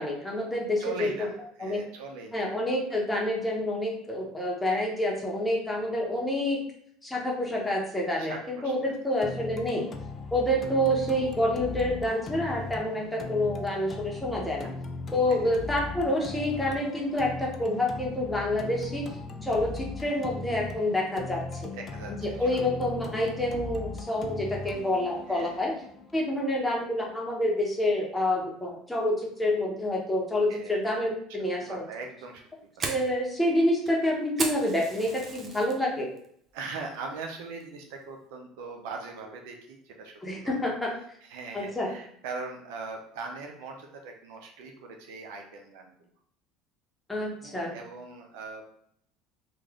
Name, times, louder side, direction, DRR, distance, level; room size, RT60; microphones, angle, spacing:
voice 1, 0.0-1.3 1.6-1.8 2.3-6.6 7.0-9.9 10.3-14.7 15.1-19.0 19.4-21.4 22.2-25.7 26.1-31.8 32.8-36.1 40.2-40.9 41.5-41.9 47.1-47.7, left 1 dB, 10° left, -2 dB, 1.1 m, -28 dB
voice 2, 0.8-2.4 8.2-9.2 15.3-15.5 21.7-22.5 25.3-25.8 30.5-30.7 31.6-32.4 36.5-40.9 41.2-46.1 47.4-48.6, right 4 dB, 80° right, 2 dB, 0.6 m, -41 dB
sound 1, 9.2-27.2, left 3 dB, 40° left, 0.4 m, -39 dB
Fire, 32.2-35.8 36.2-36.6 36.9-37.1 37.6-37.9, right 3 dB, 35° right, 0.7 m, -36 dB
3.2 x 2.6 x 3.6 m, 0.67 s
supercardioid pair, 95°, 0 cm